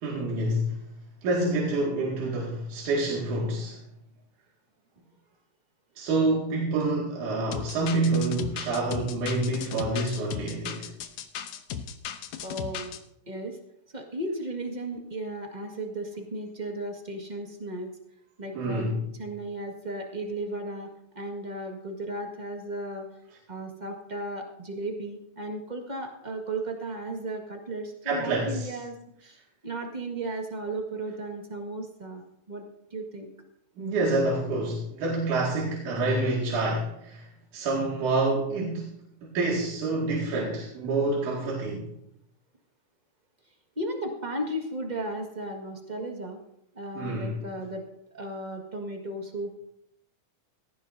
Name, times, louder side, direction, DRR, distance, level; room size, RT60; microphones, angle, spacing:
voice 1, 0.0-0.8 1.2-3.8 6.0-10.9 18.5-19.0 28.0-28.7 33.8-37.3 37.5-38.9 39.2-41.9 47.0-47.4, right 2 dB, 75° right, -4 dB, 3.6 m, -27 dB
sound 1, 7.5-13.0, left 8 dB, 75° left, 2.1 m, -36 dB
voice 2, 12.4-13.0 13.3-13.6 13.9-17.9 18.4-18.9 19.2-20.9 21.1-23.1 23.5-28.9 29.2-29.4 29.6-32.2 32.5-32.6 32.9-33.3 43.7-46.4 46.7-47.8 48.1-49.5, right 1 dB, 20° right, 2 dB, 1.1 m, -35 dB
18.0 x 14.5 x 2.7 m, 0.75 s
omnidirectional pair, 3.6 m